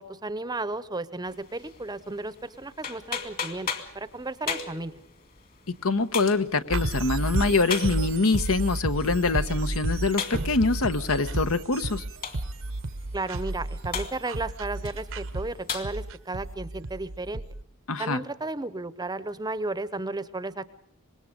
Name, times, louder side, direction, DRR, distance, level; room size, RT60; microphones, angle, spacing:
voice 1, 0.0-3.7 3.9-4.9 13.1-17.4 18.0-20.7, right 2 dB, 20° right, 15 dB, 0.8 m, -34 dB
sound 1, 1.3-15.9, left 6 dB, 40° left, 2.3 m, -39 dB
voice 2, 5.8-12.0 17.9-18.2, left 3 dB, 70° left, 10 dB, 1.1 m, -24 dB
sound 2, 6.7-17.6, right 2 dB, 65° right, 0.9 m, -32 dB
25.5 x 21.0 x 5.2 m, 0.75 s
head